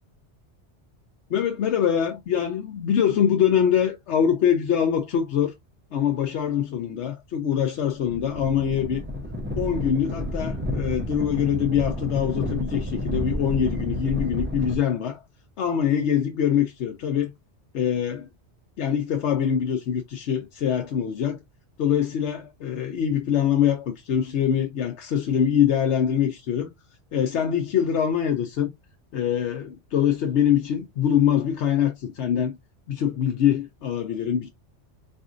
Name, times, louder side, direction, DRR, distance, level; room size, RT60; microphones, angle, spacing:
voice 1, 1.3-5.5 5.9-9.0 9.6-15.2 15.6-17.3 17.7-18.3 18.8-21.4 21.8-26.7 27.1-28.7 29.1-32.5 32.9-34.5, left 9 dB, 75° left, 0.9 m, -24 dB
sound 1, 8.0-14.8, left 1 dB, 20° right, 0.3 m, -30 dB
4.2 x 2.6 x 2.4 m
omnidirectional pair, 1.2 m